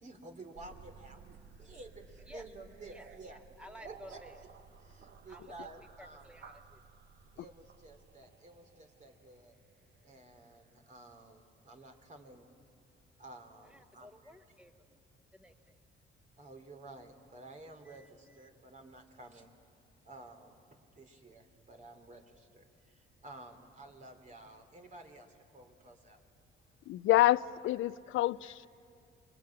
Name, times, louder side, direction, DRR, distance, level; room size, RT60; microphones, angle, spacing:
voice 1, 0.0-3.4 3.8-4.5 4.8-6.3 7.3-9.5 10.0-12.5 13.2-14.1 16.4-19.5 20.0-20.7 21.0-26.2 28.4-28.5, right 2 dB, 40° right, 5 dB, 3.0 m, -52 dB
sound 1, 0.5-10.6, right 6 dB, 60° right, 1.2 m, -56 dB
voice 2, 2.9-4.4 5.3-5.7 6.0-6.8 13.7-15.0 15.3-15.5 17.9-18.1, left 1 dB, 5° right, 5 dB, 1.8 m, -54 dB
voice 3, 26.9-28.7, left 15 dB, 80° left, 17 dB, 0.5 m, -27 dB
27.5 x 22.5 x 8.8 m, 2.5 s
cardioid pair, 90°, 20 cm